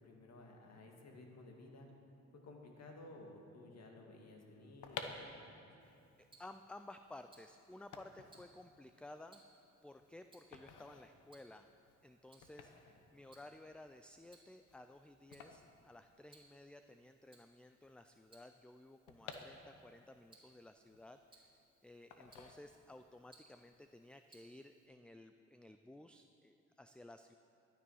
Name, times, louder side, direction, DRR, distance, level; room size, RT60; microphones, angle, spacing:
voice 1, 0.0-1.9 2.4-5.6 12.8-13.0, left 2 dB, 60° left, 1 dB, 2.0 m, -55 dB
sound 1, 4.6-16.7 17.0-17.1 17.2-20.1 20.5-21.6 22.1-23.1 23.5-23.7, left 6 dB, 80° left, 1.0 m, -53 dB
voice 2, 5.8-9.4 9.8-11.7 12.0-21.5 21.8-27.3, left 2 dB, 5° left, 8 dB, 0.3 m, -56 dB
Tick-tock, 5.8-24.9, right 2 dB, 15° right, 2.7 m, -70 dB
12.0 x 10.0 x 5.6 m, 2.7 s
cardioid pair, 90°, 30 cm